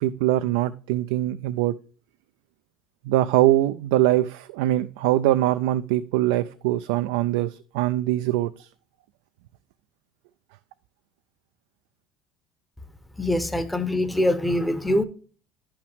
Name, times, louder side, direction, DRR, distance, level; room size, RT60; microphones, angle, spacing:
voice 1, 0.0-1.7 3.1-8.7, right 14 dB, 90° right, 11 dB, 0.3 m, -23 dB
voice 2, 13.2-15.0, left 1 dB, 5° left, 9 dB, 0.8 m, -23 dB
10.5 x 5.7 x 3.5 m, 0.40 s
supercardioid pair, 105°, 0 cm